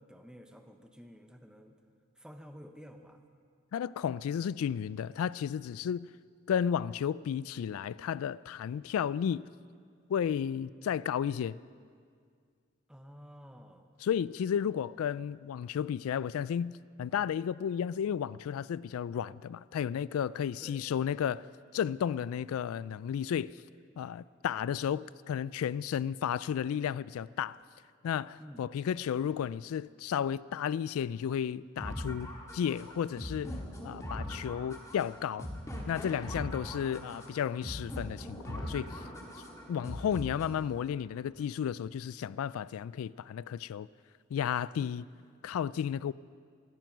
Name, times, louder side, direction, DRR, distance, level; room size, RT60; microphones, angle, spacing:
voice 1, 0.0-1.7 2.1-3.2 12.9-13.9 20.6-20.8 28.4-28.7 36.5-37.2, equal, 5° right, 0.9 m, -51 dB
voice 2, 3.7-6.1 6.5-9.5 10.1-11.6 14.0-21.5 21.7-23.5 24.0-27.6 28.0-33.6 33.8-35.5 35.9-38.9 39.7-43.9 44.3-45.0 45.4-46.1, left 8 dB, 85° left, 0.3 m, -33 dB
sound 1, 31.8-40.8, equal, 15° left, 1.9 m, -41 dB
17.0 x 13.5 x 6.1 m
head